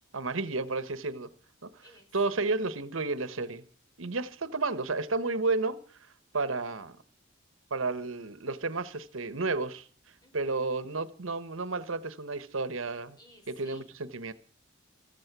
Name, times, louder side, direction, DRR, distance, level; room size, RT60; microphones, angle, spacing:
voice 1, 0.1-1.3 1.6-1.7 2.1-3.6 4.0-5.8 6.3-7.0 7.7-9.9 10.3-13.2 13.5-14.3, right 3 dB, 85° right, 1.2 m, -32 dB
voice 2, 1.8-2.4 10.2-10.7 13.2-13.9, equal, 20° left, 4.4 m, -58 dB
15.0 x 15.0 x 6.1 m
head